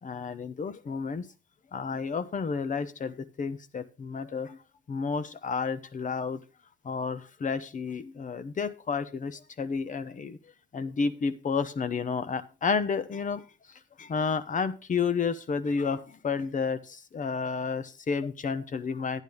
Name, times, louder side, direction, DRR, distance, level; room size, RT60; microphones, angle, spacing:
voice 1, 0.0-1.3 1.7-6.4 6.8-19.2, left 5 dB, 40° left, 13 dB, 1.0 m, -31 dB
10.5 x 10.0 x 3.6 m, 0.30 s
cardioid pair, 90°, 20 cm